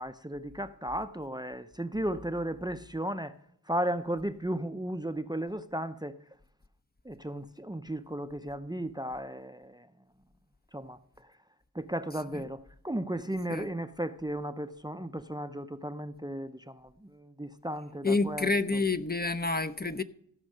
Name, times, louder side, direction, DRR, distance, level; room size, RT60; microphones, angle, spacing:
voice 1, 0.0-3.3 3.7-6.2 7.0-9.9 10.7-11.0 11.7-18.8, right 1 dB, 10° right, 0.5 m, -35 dB
voice 2, 18.0-20.0, left 3 dB, 30° left, 0.6 m, -28 dB
15.0 x 5.3 x 6.5 m
wide cardioid pair, 45°, 34 cm